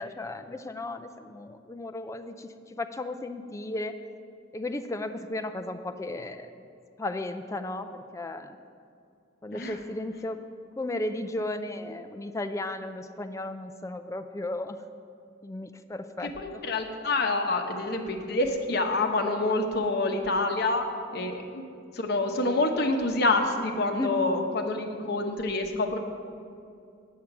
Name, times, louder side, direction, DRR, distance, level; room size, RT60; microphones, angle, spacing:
voice 1, 0.0-4.0 4.5-6.5 7.0-8.6 9.4-10.4 10.8-14.8 15.4-16.6 21.1-21.3 23.9-24.1, left 2 dB, 15° left, 8 dB, 0.4 m, -35 dB
voice 2, 16.2-20.9 21.1-21.7 21.9-26.0, left 2 dB, 55° left, 4 dB, 0.9 m, -27 dB
8.3 x 7.5 x 5.9 m, 2.5 s
head